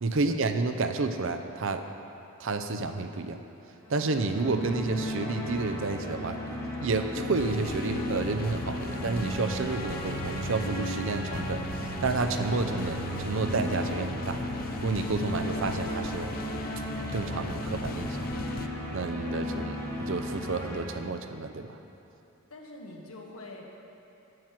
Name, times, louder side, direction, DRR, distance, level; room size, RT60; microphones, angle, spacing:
voice 1, 0.0-1.8 2.4-3.4 3.9-14.4 14.8-16.3 17.1-18.2 18.9-21.8, right 3 dB, 60° right, 7 dB, 0.6 m, -30 dB
sound 1, 3.8-20.8, equal, 15° left, 1.9 m, -35 dB
sound 2, 7.1-18.7, left 3 dB, 40° left, 0.4 m, -38 dB
voice 2, 22.5-23.7, left 2 dB, 85° left, -1 dB, 1.4 m, -44 dB
9.5 x 5.9 x 7.5 m, 2.9 s
head